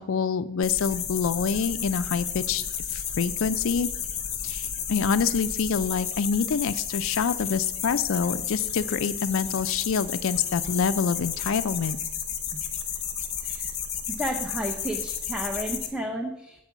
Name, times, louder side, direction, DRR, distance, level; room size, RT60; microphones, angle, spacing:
voice 1, 0.0-2.6 2.9-3.9 4.4-12.0, left 6 dB, 65° left, 12 dB, 0.4 m, -26 dB
sound 1, 0.6-15.9, left 8 dB, 30° left, 0.9 m, -32 dB
voice 2, 14.2-16.6, equal, 5° right, 0 dB, 0.6 m, -32 dB
8.1 x 4.6 x 7.1 m, 0.85 s
head